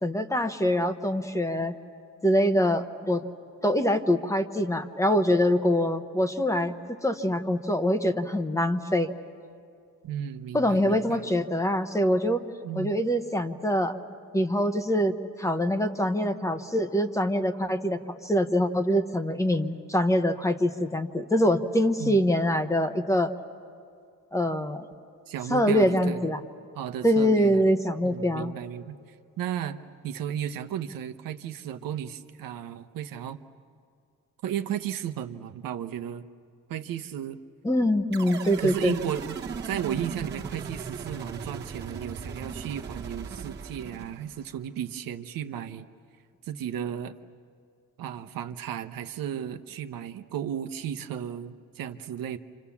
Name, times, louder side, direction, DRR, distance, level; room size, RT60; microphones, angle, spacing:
voice 1, 0.0-1.8 2.2-3.2 3.6-6.8 7.0-9.1 10.5-12.4 12.8-14.0 14.3-15.1 15.4-23.3 24.3-24.8 25.5-26.4 27.0-28.5 37.6-39.0, equal, 10° left, 8 dB, 0.9 m, -24 dB
voice 2, 10.0-11.2 12.6-13.0 22.0-22.3 25.3-26.3 26.7-27.6 28.0-29.0 29.4-29.8 30.0-33.4 34.4-36.2 36.7-37.4 38.6-39.4 39.6-45.9 46.4-47.1 48.0-52.4, right 9 dB, 85° right, 8 dB, 1.0 m, -34 dB
sound 1, 38.1-44.6, right 6 dB, 30° right, 1.3 m, -38 dB
30.0 x 26.5 x 7.2 m, 2.3 s
cardioid pair, 150°, 33 cm